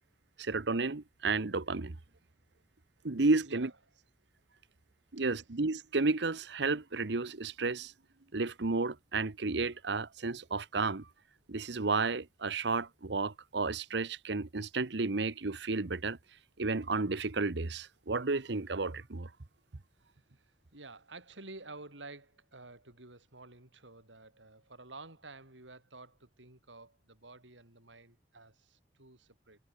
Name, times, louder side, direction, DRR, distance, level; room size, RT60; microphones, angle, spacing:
voice 1, 0.4-2.0 3.0-3.7 5.1-7.9 8.3-11.0 11.5-16.2 16.6-19.3, right 3 dB, 65° right, 1.0 m, -32 dB
voice 2, 20.0-29.6, right 3 dB, 85° right, 5.6 m, -51 dB
head